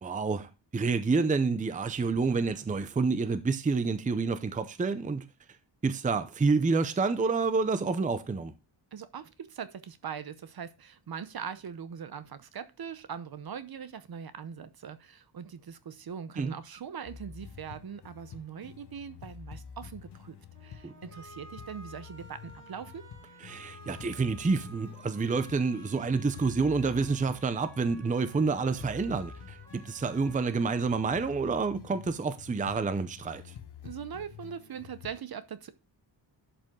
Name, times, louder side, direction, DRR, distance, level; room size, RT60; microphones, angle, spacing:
voice 1, 0.0-5.3 5.8-8.5 16.4-16.5 20.8-20.9 23.4-33.4, right 4 dB, 20° right, 0.5 m, -28 dB
voice 2, 8.9-20.4 20.6-23.0 33.8-35.7, right 7 dB, 55° right, 0.8 m, -41 dB
sound 1, 17.0-35.2, left 8 dB, 65° left, 1.1 m, -49 dB
sound 2, 20.5-31.5, right 1 dB, 35° right, 5.4 m, -53 dB
11.0 x 5.3 x 3.6 m
wide cardioid pair, 175°, 44 cm